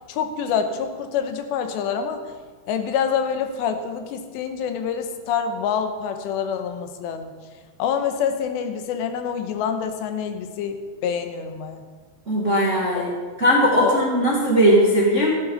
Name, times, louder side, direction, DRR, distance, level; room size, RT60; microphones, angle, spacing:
voice 1, 0.1-2.2 2.7-7.3 7.8-11.8 12.9-13.2 13.8-14.0, left 7 dB, 90° left, 7 dB, 3.2 m, -26 dB
voice 2, 12.3-13.1 13.4-15.3, equal, 30° right, -4 dB, 1.3 m, -18 dB
15.0 x 11.5 x 5.5 m, 1.5 s
omnidirectional pair, 4.9 m